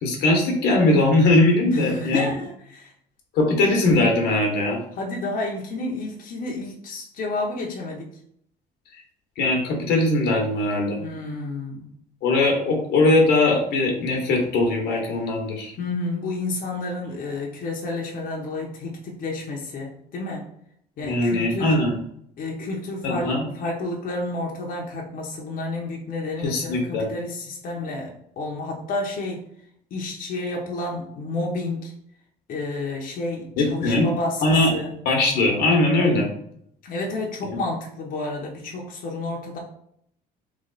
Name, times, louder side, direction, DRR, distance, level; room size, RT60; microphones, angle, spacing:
voice 1, 0.0-2.3 3.3-4.8 9.4-11.0 12.2-15.7 21.0-22.0 23.0-23.4 26.4-27.1 33.6-34.1 34.4-34.7 35.0-36.3 37.5-37.6, left 2 dB, 85° left, 1 dB, 1.2 m, -20 dB
voice 2, 1.7-2.9 4.9-8.1 11.0-12.0 15.8-20.5 21.0-21.7 22.4-29.4 29.9-31.9 32.5-34.9 36.8-39.6, left 2 dB, 55° left, -1 dB, 0.9 m, -30 dB
3.3 x 3.2 x 3.9 m, 0.69 s
cardioid pair, 110°, 17 cm